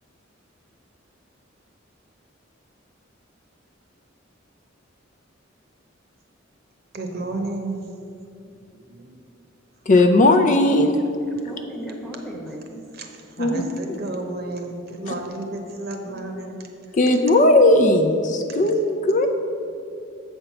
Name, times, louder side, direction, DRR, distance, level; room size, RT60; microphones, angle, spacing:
voice 1, 6.9-7.9 8.7-9.2 12.4-12.6 12.9-17.0 18.5-18.6, right 2 dB, 55° right, 4 dB, 0.9 m, -32 dB
voice 2, 9.9-11.0 13.4-13.6 13.9-14.0 16.9-19.3, left 1 dB, 40° left, 6 dB, 0.4 m, -17 dB
voice 3, 11.3-12.8 16.1-16.3, right 1 dB, 5° left, 0 dB, 1.0 m, -36 dB
7.8 x 4.5 x 6.9 m, 2.5 s
head